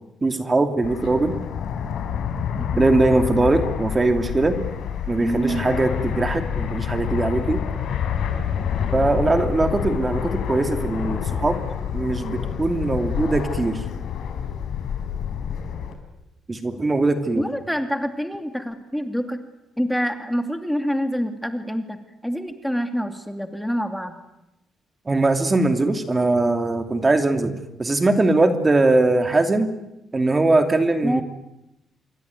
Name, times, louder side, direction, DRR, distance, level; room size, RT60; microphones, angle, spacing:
voice 1, 0.2-1.4 2.8-4.6 5.1-7.7 8.9-11.6 11.9-13.8 16.5-17.4 25.1-27.5 27.8-29.7 30.1-31.2, right 2 dB, 25° right, 7 dB, 2.7 m, -21 dB
Fixed-wing aircraft airplane, 0.8-15.9, left 8 dB, 75° left, 4.3 m, -28 dB
voice 2, 5.2-5.7 17.4-19.4 19.8-24.2 31.0-31.2, equal, ahead, 7 dB, 2.6 m, -26 dB
27.0 x 22.5 x 9.6 m, 0.91 s
cardioid pair, 90°, 0 cm